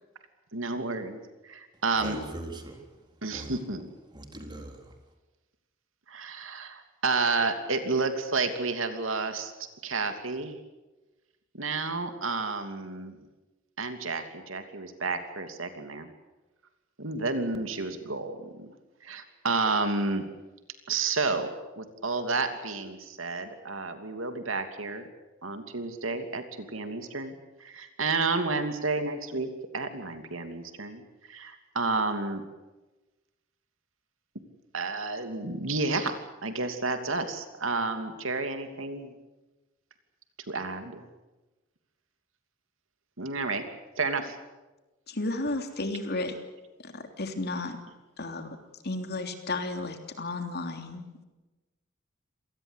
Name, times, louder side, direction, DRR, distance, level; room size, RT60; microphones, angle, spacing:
voice 1, 0.5-2.2 3.2-3.9 6.1-9.5 9.8-10.6 11.5-13.2 13.8-16.1 17.0-18.7 19.0-20.2 20.9-21.5 21.8-25.0 25.4-27.3 27.6-31.0 31.3-32.4 34.7-39.1 40.5-41.0 43.2-43.6 44.0-44.4, right 3 dB, 70° right, 7 dB, 2.9 m, -31 dB
voice 2, 2.0-3.0 3.3-3.6 4.1-5.0, right 1 dB, 20° right, 4 dB, 4.0 m, -41 dB
voice 3, 45.1-46.4 46.8-47.8 48.2-48.6 48.8-51.2, left 2 dB, 55° left, 6 dB, 3.2 m, -33 dB
27.0 x 19.5 x 8.3 m, 1.1 s
head